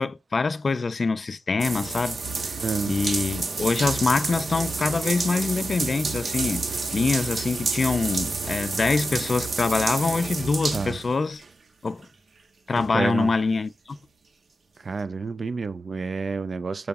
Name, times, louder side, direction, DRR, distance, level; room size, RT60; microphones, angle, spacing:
voice 1, 0.0-2.6 2.9-11.4 11.8-12.0 12.7-14.0, left 4 dB, 50° left, 0.4 m, -25 dB
sound 1, 1.6-11.5 12.0-12.1 12.8-12.9, right 4 dB, 75° right, 1.0 m, -29 dB
voice 2, 2.6-3.0 10.7-11.0 12.9-13.3 14.8-16.9, right 4 dB, 55° right, 0.4 m, -29 dB
6.9 x 4.7 x 3.6 m
wide cardioid pair, 140°, 0 cm